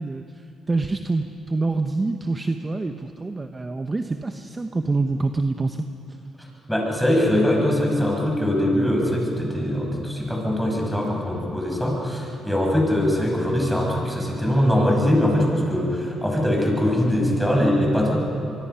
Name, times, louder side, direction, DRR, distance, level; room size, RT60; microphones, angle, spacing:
voice 1, 0.0-5.8, right 3 dB, 25° right, 7 dB, 0.9 m, -26 dB
voice 2, 6.7-18.2, left 1 dB, ahead, -2 dB, 6.5 m, -22 dB
24.0 x 24.0 x 5.7 m, 2.7 s
cardioid pair, 90°, 0 cm